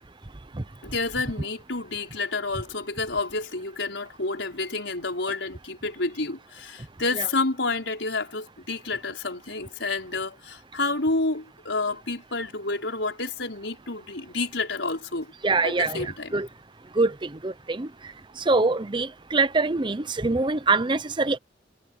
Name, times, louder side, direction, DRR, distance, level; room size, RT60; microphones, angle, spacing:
voice 1, 0.8-15.3 15.6-16.4, left 3 dB, 85° left, 5.0 m, -29 dB
voice 2, 15.4-16.5 17.0-17.9 18.4-21.4, right 3 dB, 25° right, 0.7 m, -24 dB
head